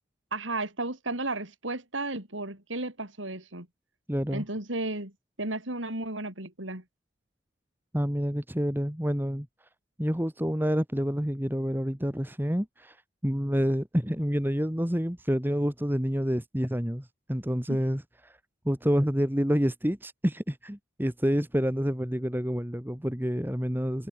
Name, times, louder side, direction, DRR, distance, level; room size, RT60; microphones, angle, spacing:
voice 1, 0.3-3.7 4.3-5.1 5.4-6.8 17.7-17.8, right 2 dB, 80° right, 5.1 m, -33 dB
voice 2, 4.1-4.4 7.9-9.5 10.0-13.0 13.2-18.4 18.7-24.1, equal, 10° right, 1.9 m, -28 dB
head